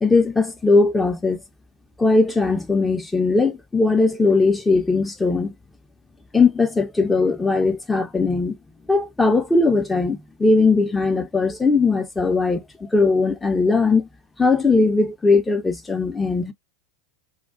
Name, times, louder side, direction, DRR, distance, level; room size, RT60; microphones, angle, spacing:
voice 1, 0.0-1.4 2.0-5.5 6.3-8.6 8.9-14.1 14.4-16.5, left 3 dB, 10° left, 0.7 m, -19 dB
2.3 x 2.3 x 2.4 m
hypercardioid pair, 100°, 0 cm